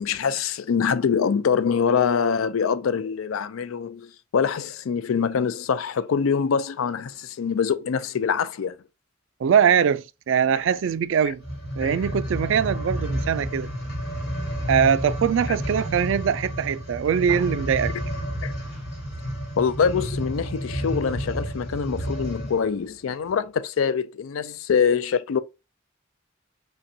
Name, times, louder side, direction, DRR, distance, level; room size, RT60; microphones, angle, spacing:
voice 1, 0.0-8.8 11.8-12.1 18.4-18.5 19.6-25.4, left 6 dB, 90° left, 0.4 m, -24 dB
voice 2, 9.4-11.4 11.8-13.7 14.7-17.9, right 7 dB, 65° right, 0.3 m, -22 dB
sound 1, 11.3-22.7 23.3-23.4, equal, 60° left, 2.4 m, -30 dB
5.2 x 2.2 x 2.6 m
head